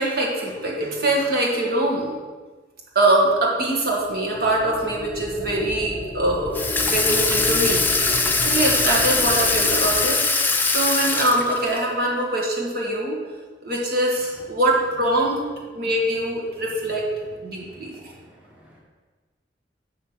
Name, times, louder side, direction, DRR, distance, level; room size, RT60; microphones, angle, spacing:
voice 1, 0.0-2.2 3.0-6.6 6.8-10.2 10.7-13.2 13.6-15.4 15.7-17.1 17.4-18.1, right 1 dB, 55° right, -2 dB, 2.0 m, -23 dB
sound 1, 4.0-10.1, equal, 30° left, 0.9 m, -33 dB
Water tap faucet / Sink (filling or washing), 6.5-11.8, left 3 dB, 10° left, 0.5 m, -21 dB
voice 2, 17.5-18.8, equal, 10° right, -4 dB, 1.1 m, -51 dB
7.0 x 6.0 x 6.2 m, 1.4 s
head